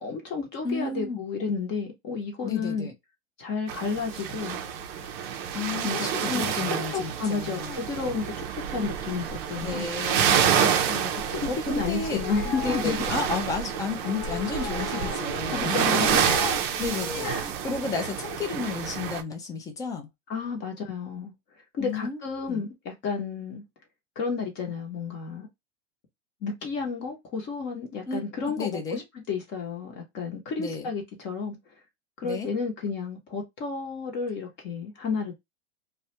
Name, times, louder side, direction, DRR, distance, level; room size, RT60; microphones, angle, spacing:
voice 1, 0.0-2.9 3.4-4.6 5.8-9.9 10.9-13.0 15.5-16.2 17.2-17.5 20.3-21.3 21.7-23.6 24.2-25.5 26.4-29.0 29.3-31.6 32.2-35.4, left 5 dB, 30° left, 0.7 m, -32 dB
voice 2, 0.6-1.2 2.4-2.9 5.5-7.9 9.6-11.0 11.5-16.0 16.8-20.1 21.8-22.2 22.5-22.6 28.1-28.2 28.6-29.0 30.6-30.9 32.2-32.5, left 5 dB, 10° left, 0.3 m, -32 dB
sound 1, 3.7-19.2, right 8 dB, 45° right, 0.5 m, -28 dB
sound 2, 12.0-13.0 14.0-15.4 15.7-16.6 16.9-17.5, left 9 dB, 65° left, 1.0 m, -37 dB
2.3 x 2.1 x 2.8 m
hypercardioid pair, 135°, 35 cm